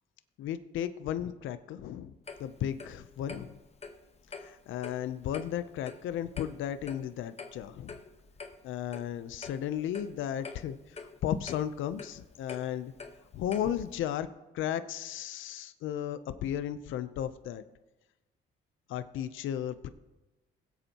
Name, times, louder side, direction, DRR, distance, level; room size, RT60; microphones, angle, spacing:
voice 1, 0.4-2.1 2.4-3.6 4.3-7.9 8.6-12.9 13.3-14.3 14.5-17.6 18.9-19.9, left 10 dB, 80° left, 12 dB, 0.6 m, -35 dB
Clock, 2.3-14.0, left 4 dB, 30° left, 1.2 m, -47 dB
21.5 x 8.1 x 2.9 m, 1.1 s
cardioid pair, 90°, 20 cm